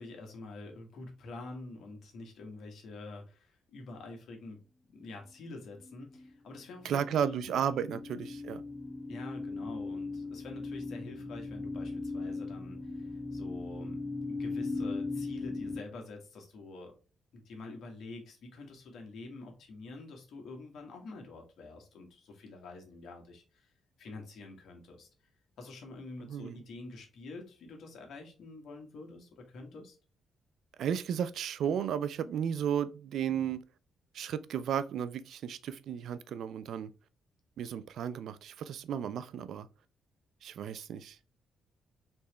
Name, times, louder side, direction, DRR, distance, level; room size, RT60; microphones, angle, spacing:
voice 1, 0.0-4.6 4.9-8.0 9.1-14.0 14.3-16.9 17.3-23.7 24.0-25.1 25.6-30.0, left 3 dB, 70° left, 1.6 m, -47 dB
sound 1, 5.8-6.6 7.0-15.8, left 3 dB, 10° left, 0.7 m, -38 dB
voice 2, 6.8-8.6 26.3-26.6 30.8-33.6 34.1-36.9 37.6-39.7 40.4-41.2, right 8 dB, 75° right, 0.4 m, -34 dB
4.4 x 3.2 x 2.9 m
cardioid pair, 75°, 0 cm